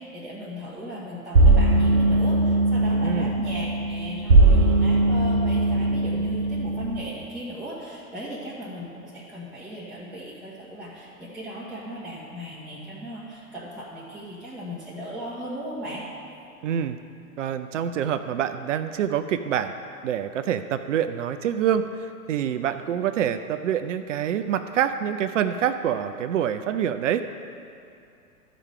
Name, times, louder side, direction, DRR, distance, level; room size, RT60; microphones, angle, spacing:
voice 1, 0.0-16.0, equal, ahead, -10 dB, 1.3 m, -37 dB
sound 1, 1.3-7.0, right 2 dB, 90° right, 0.8 m, -20 dB
voice 2, 3.0-3.4 16.6-17.0 17.4-19.7 20.0-27.2, right 9 dB, 55° right, 10 dB, 0.6 m, -26 dB
13.0 x 5.1 x 5.6 m, 2.6 s
figure-of-eight pair, 105°, 44 cm